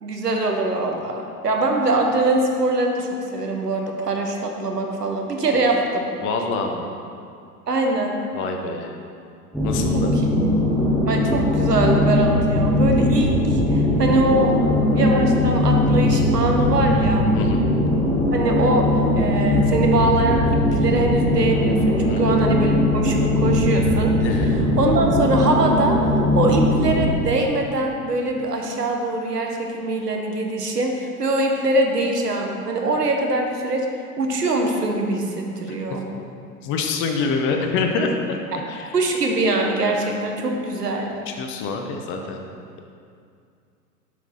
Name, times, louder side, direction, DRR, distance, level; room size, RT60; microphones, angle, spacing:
voice 1, 0.0-6.0 7.7-8.1 9.9-10.0 11.1-13.3 13.7-14.5 14.9-17.3 18.3-24.1 24.8-26.0 26.3-33.9 34.2-36.0 38.9-41.1, right 2 dB, 80° right, 2 dB, 1.0 m, -23 dB
voice 2, 6.2-6.9 8.3-8.9 9.6-10.1 17.3-17.6 22.1-22.4 24.2-24.5 36.6-38.1 38.7-38.9 41.3-42.4, left 4 dB, 25° left, 3 dB, 0.6 m, -26 dB
sound 1, 9.5-27.1, left 1 dB, ahead, 1.3 m, -20 dB
7.2 x 6.0 x 4.1 m, 2.4 s
figure-of-eight pair, 90°, 47 cm